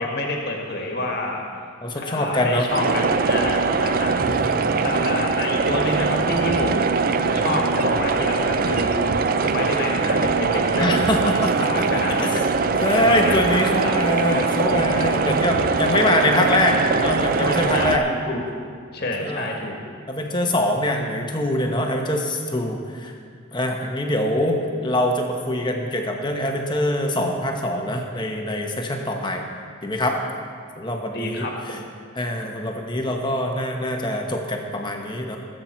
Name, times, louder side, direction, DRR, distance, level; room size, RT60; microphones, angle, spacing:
voice 1, 0.0-1.4 1.9-4.5 4.8-7.0 7.3-9.0 9.3-12.3 13.0-14.0 15.9-16.2 17.7-18.4 18.9-19.8 31.1-31.8, left 2 dB, 50° left, 0 dB, 1.7 m, -28 dB
voice 2, 1.8-2.7 4.2-4.9 10.8-12.4 12.8-18.1 19.2-19.5 20.1-23.1 23.5-29.5 29.8-30.2 30.8-31.8 32.1-35.4, left 1 dB, 20° left, 2 dB, 1.1 m, -24 dB
sound 1, 2.7-18.0, right 4 dB, 40° right, 0.5 m, -22 dB
20.5 x 7.8 x 4.5 m, 2.2 s
head